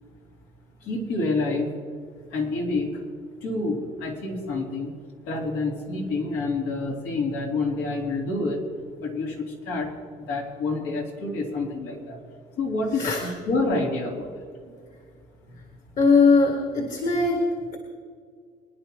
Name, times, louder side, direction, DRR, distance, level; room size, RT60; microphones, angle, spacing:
voice 1, 0.8-1.7 2.3-3.0 3.4-4.9 5.3-8.6 9.0-9.9 10.3-12.2 12.6-14.5, left 3 dB, 85° left, -2 dB, 3.5 m, -28 dB
voice 2, 16.0-17.4, left 4 dB, 50° left, 1 dB, 2.0 m, -20 dB
23.0 x 11.0 x 3.1 m, 2.1 s
cardioid pair, 110°, 17 cm